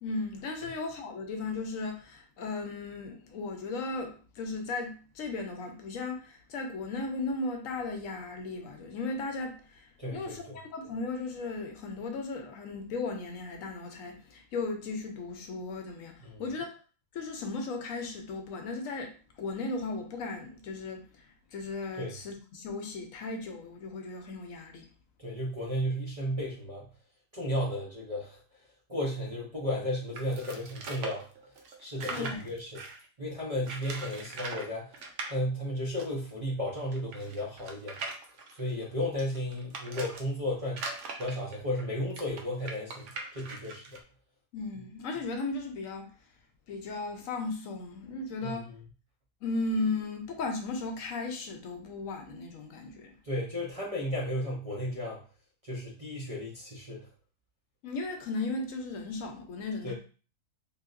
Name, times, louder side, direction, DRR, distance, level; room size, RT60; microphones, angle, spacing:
voice 1, 0.0-16.7 17.1-19.1 19.4-21.0 21.5-24.9 32.1-32.5 44.5-46.1 46.7-48.7 49.4-53.1 57.8-59.9, left 3 dB, 75° left, 1.0 m, -36 dB
voice 2, 10.0-10.6 16.2-16.4 22.0-22.1 25.2-26.9 27.3-28.4 28.9-31.3 31.8-32.8 33.2-35.0 35.3-38.0 38.5-40.8 41.2-43.8 48.4-48.7 53.2-55.2 55.6-57.1 59.8-59.9, left 1 dB, 35° right, 0.6 m, -34 dB
sound 1, 30.1-33.0 33.6-34.7 34.9-35.3 36.0-36.1 36.3-36.4 36.9-40.2 40.7-44.0, right 3 dB, 65° right, 0.9 m, -40 dB
3.5 x 2.7 x 2.5 m
omnidirectional pair, 1.4 m